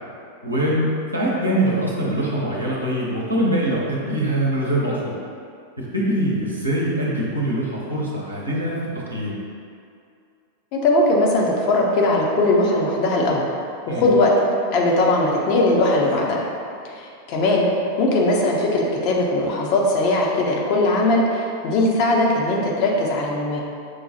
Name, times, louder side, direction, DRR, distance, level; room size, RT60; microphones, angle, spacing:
voice 1, 0.4-5.2 5.8-8.8 9.1-9.4 13.9-14.0, right 1 dB, 80° right, -5 dB, 0.8 m, -23 dB
voice 2, 10.7-13.5 13.9-14.3 14.7-16.4 16.9-17.7 18.0-23.6, left 2 dB, 45° left, -2 dB, 0.6 m, -19 dB
6.2 x 2.3 x 2.8 m, 2.4 s
figure-of-eight pair, 90°, 0 cm